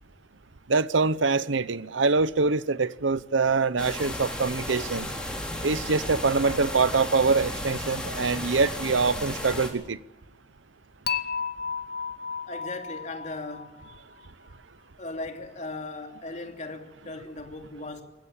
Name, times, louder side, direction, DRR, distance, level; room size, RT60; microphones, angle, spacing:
voice 1, 0.7-5.1 5.6-10.0, right 4 dB, 85° right, 0.8 m, -24 dB
sound 1, 3.8-9.7, left 1 dB, 5° left, 4.6 m, -34 dB
Dishes pots and pans / Chink clink, 11.1-14.2, left 6 dB, 55° left, 0.7 m, -33 dB
voice 2, 12.5-13.8 15.0-18.0, left 2 dB, 40° left, 2.9 m, -37 dB
27.0 x 15.5 x 8.7 m
head